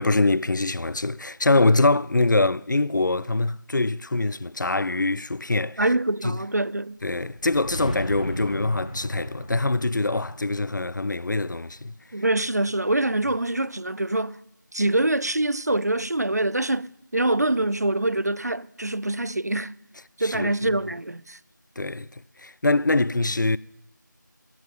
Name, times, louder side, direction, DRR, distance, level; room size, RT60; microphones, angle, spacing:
voice 1, 0.0-5.9 6.2-6.4 7.0-11.9 20.2-20.7 21.8-23.6, left 2 dB, 65° left, 0.4 m, -24 dB
voice 2, 5.8-7.0 12.1-14.4 14.7-19.7 20.2-21.4, right 2 dB, 55° right, 0.4 m, -25 dB
sound 1, 7.0-12.1, equal, 20° left, 1.0 m, -36 dB
16.5 x 7.8 x 5.4 m
figure-of-eight pair, 180°, 11 cm